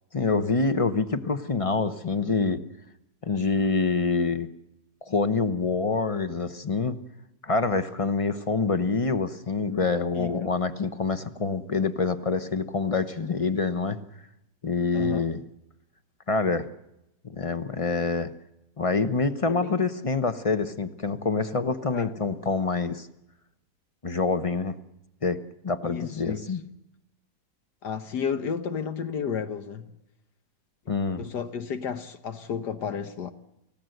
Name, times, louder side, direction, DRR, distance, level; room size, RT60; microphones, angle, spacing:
voice 1, 0.1-2.6 3.2-4.5 5.0-7.0 7.4-14.0 14.6-15.4 16.3-16.7 17.3-18.3 18.8-23.1 24.0-24.7 25.2-25.4 25.6-26.6 30.9-31.2, left 4 dB, 30° left, 0.7 m, -26 dB
voice 2, 14.9-15.3 19.5-19.8 21.9-22.1 25.8-26.6 27.8-29.9 31.2-33.3, left 7 dB, 80° left, 1.7 m, -32 dB
30.0 x 16.0 x 7.9 m
omnidirectional pair, 1.8 m